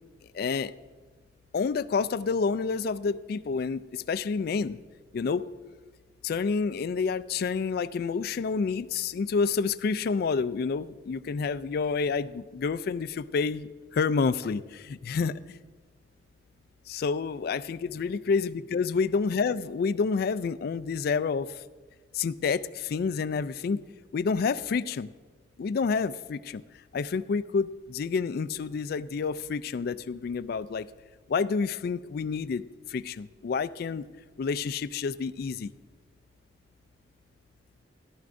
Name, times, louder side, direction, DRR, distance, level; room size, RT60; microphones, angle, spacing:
voice 1, 0.3-0.7 1.5-4.8 5.1-5.5 6.2-15.6 16.9-21.6 22.1-23.8 24.1-25.1 25.6-26.6 26.9-30.9 31.3-34.0 34.4-35.7, left 5 dB, 55° left, 16 dB, 0.3 m, -29 dB
14.0 x 12.0 x 2.6 m, 1.4 s
head